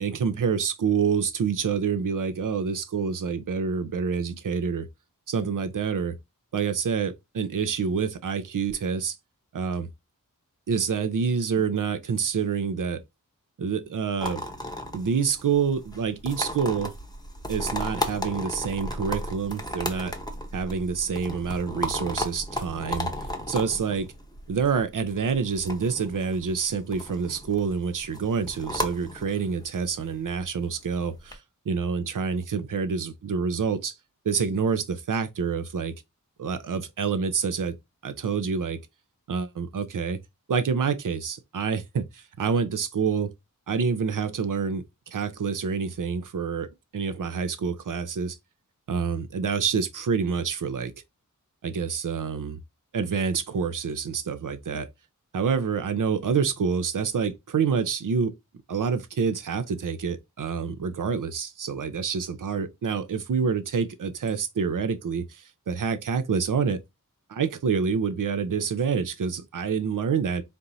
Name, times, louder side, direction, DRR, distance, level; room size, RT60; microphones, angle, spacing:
voice 1, 0.0-4.9 5.3-6.2 6.5-9.1 9.5-9.9 10.7-13.0 13.6-14.4 14.9-16.9 17.5-20.1 20.5-23.1 23.5-24.1 24.5-31.4 31.7-33.9 34.2-35.9 36.4-37.8 38.0-38.8 39.3-40.2 40.5-43.3 43.7-48.4 48.9-50.9 51.6-52.6 52.9-54.9 55.3-58.3 58.7-66.8 67.3-70.4, right 6 dB, 65° right, 0.7 m, -27 dB
sound 1, 14.2-31.3, equal, 10° left, 0.9 m, -35 dB
4.4 x 2.0 x 3.9 m
wide cardioid pair, 60°, 34 cm